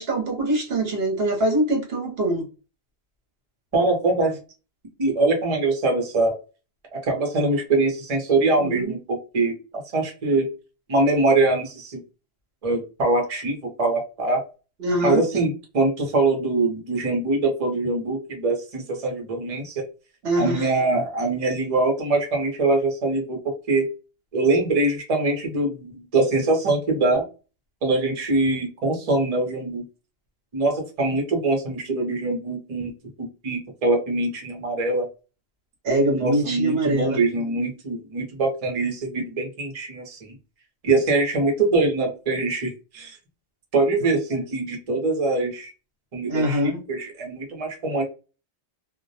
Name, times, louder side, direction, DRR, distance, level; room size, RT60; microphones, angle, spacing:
voice 1, 0.0-2.5 8.6-8.9 14.8-15.2 20.2-20.7 35.8-37.2 46.3-46.8, right 1 dB, 65° right, 0.9 m, -23 dB
voice 2, 3.7-4.4 5.0-6.4 6.9-10.5 10.9-12.0 12.6-14.4 15.0-19.8 20.4-23.8 24.3-27.2 27.8-29.8 30.5-32.9 33.2-35.1 36.1-40.2 40.8-43.2 43.7-45.7 46.1-48.0, right 2 dB, 40° right, 0.7 m, -23 dB
2.2 x 2.1 x 2.6 m
omnidirectional pair, 1.1 m